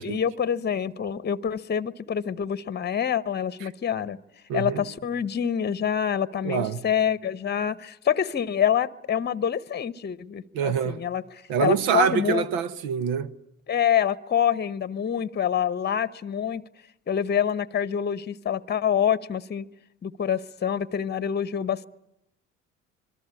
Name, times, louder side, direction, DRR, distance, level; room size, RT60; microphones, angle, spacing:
voice 1, 0.0-4.2 4.5-12.5 13.7-16.6 17.1-19.7 20.0-21.9, left 8 dB, 25° left, 1.0 m, -26 dB
voice 2, 4.5-4.8 6.4-6.8 10.5-11.0 11.5-13.3, right 7 dB, 65° right, 1.4 m, -25 dB
26.0 x 22.5 x 9.8 m
hypercardioid pair, 60°, 38 cm